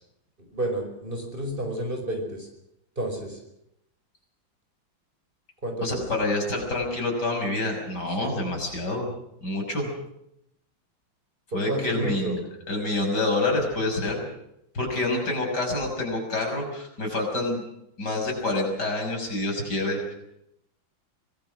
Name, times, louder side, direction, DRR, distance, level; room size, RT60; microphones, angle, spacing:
voice 1, 0.5-2.5 3.0-3.4 5.6-6.0 8.2-8.4 11.5-12.3, right 1 dB, 25° right, 3 dB, 5.2 m, -30 dB
voice 2, 5.8-9.1 9.4-9.9 11.5-14.2 14.7-17.6 18.0-20.1, left 2 dB, 55° left, 1 dB, 6.8 m, -27 dB
25.0 x 20.5 x 6.3 m, 0.79 s
omnidirectional pair, 2.2 m